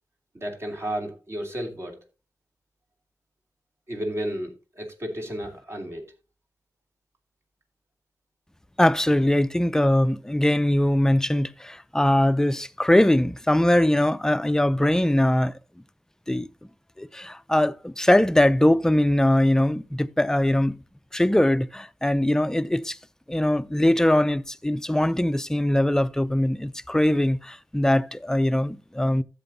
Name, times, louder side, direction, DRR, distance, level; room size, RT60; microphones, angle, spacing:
voice 1, 0.3-2.0 3.9-6.0, equal, 45° right, 2.8 m, -32 dB
voice 2, 8.8-15.5 16.3-16.5 17.0-20.8 21.1-23.0 23.3-29.2, left 1 dB, 10° left, 0.5 m, -21 dB
13.0 x 7.9 x 2.7 m
cardioid pair, 65°, 6 cm